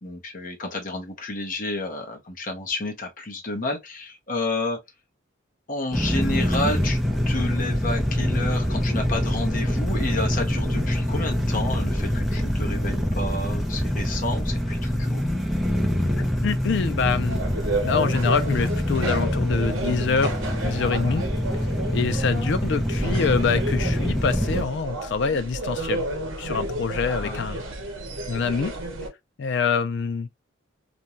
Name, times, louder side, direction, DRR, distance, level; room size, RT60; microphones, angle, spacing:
voice 1, 0.0-4.8 5.7-15.2 26.9-27.4, left 2 dB, 40° left, 0.8 m, -31 dB
sound 1, 5.9-24.6, equal, ahead, 0.5 m, -25 dB
voice 2, 16.0-17.4 17.8-20.3 20.6-21.2 21.9-26.1 26.4-27.6 28.3-28.7 29.4-30.3, left 5 dB, 55° left, 0.3 m, -25 dB
sound 2, 17.3-29.1, right 2 dB, 70° right, 0.9 m, -31 dB
2.5 x 2.2 x 2.9 m
head